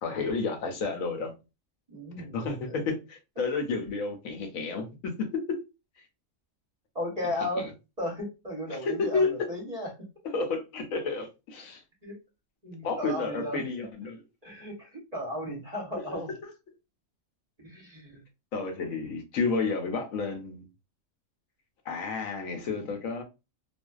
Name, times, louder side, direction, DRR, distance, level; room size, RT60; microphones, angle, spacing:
voice 1, 0.0-1.3 2.2-5.6 7.6-7.7 8.7-9.3 10.3-11.8 12.8-14.2 16.1-16.2 18.5-20.7 21.9-23.2, left 4 dB, 75° left, 1.0 m, -31 dB
voice 2, 1.9-2.9 6.9-10.1 12.0-12.2 12.6-13.6 14.4-16.3 17.6-18.2, left 1 dB, 35° right, 0.7 m, -35 dB
2.5 x 2.2 x 2.3 m
omnidirectional pair, 1.5 m